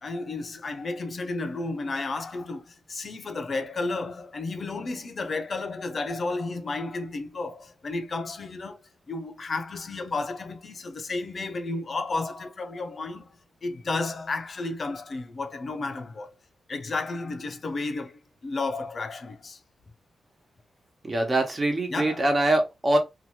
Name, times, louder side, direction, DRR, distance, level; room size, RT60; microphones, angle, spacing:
voice 1, 0.0-8.8 9.1-16.3 16.7-19.6 21.9-22.3, left 3 dB, 45° left, 0.7 m, -32 dB
voice 2, 21.0-23.0, right 1 dB, 30° right, 1.1 m, -23 dB
2.8 x 2.6 x 3.0 m
cardioid pair, 95°, 0 cm